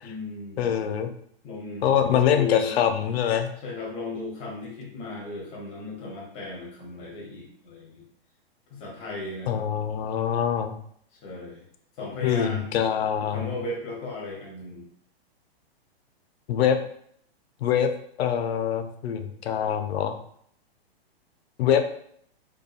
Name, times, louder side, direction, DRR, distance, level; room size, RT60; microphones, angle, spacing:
voice 1, 0.0-0.8 1.4-2.7 3.6-8.0 8.7-9.6 11.2-11.6 12.0-12.7 13.2-14.9, left 3 dB, 20° left, -2 dB, 0.7 m, -36 dB
voice 2, 0.6-1.1 1.8-3.5 9.5-10.8 12.2-13.5 16.5-16.8 17.6-17.9 18.2-20.2 21.6-21.8, left 9 dB, 80° left, 7 dB, 0.5 m, -24 dB
2.6 x 2.2 x 2.3 m, 0.64 s
hypercardioid pair, 150°, 31 cm